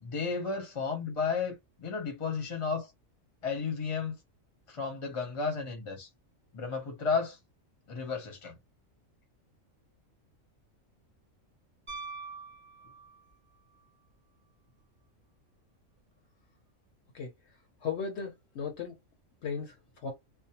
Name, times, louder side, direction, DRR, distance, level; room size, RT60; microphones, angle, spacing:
voice 1, 0.0-2.9 3.4-4.2 4.7-6.1 6.5-7.4 7.9-8.5, left 5 dB, 30° left, 0.7 m, -33 dB
Piano, 11.9-13.4 15.8-15.9, right 4 dB, 15° right, 0.4 m, -44 dB
voice 2, 17.8-19.0 19.4-20.1, left 6 dB, 65° left, 0.8 m, -36 dB
2.4 x 2.0 x 2.8 m
omnidirectional pair, 1.4 m